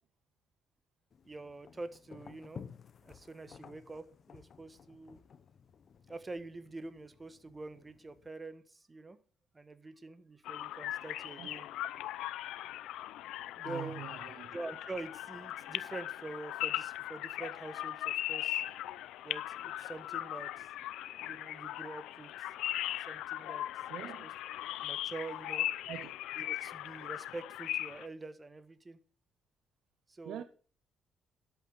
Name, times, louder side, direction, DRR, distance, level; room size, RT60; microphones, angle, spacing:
sound 1, 1.1-8.3, left 6 dB, 50° left, 1.2 m, -54 dB
voice 1, 1.2-2.7 3.0-5.2 6.1-9.2 9.5-11.7 13.6-14.1 14.5-18.6 19.2-20.7 21.2-22.5 22.8-23.7 24.0-24.3 24.6-25.7 26.4-29.0 30.1-30.4, right 3 dB, 25° right, 1.5 m, -46 dB
sound 2, 10.4-28.1, left 13 dB, 90° left, 0.6 m, -39 dB
voice 2, 13.6-14.5 23.9-24.3 25.9-26.1 30.2-30.4, right 12 dB, 80° right, 0.7 m, -44 dB
12.0 x 8.4 x 6.7 m
cardioid pair, 90°, 0 cm